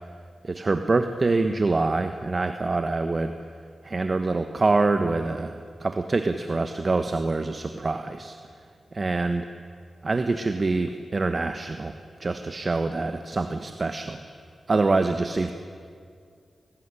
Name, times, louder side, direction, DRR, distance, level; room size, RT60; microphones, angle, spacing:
voice 1, 0.4-3.3 3.8-8.4 8.9-9.5 10.0-11.9 12.2-14.2 14.7-15.5, right 3 dB, 40° right, 8 dB, 1.4 m, -25 dB
28.5 x 19.5 x 10.0 m, 2.3 s
cardioid pair, 70°, 0 cm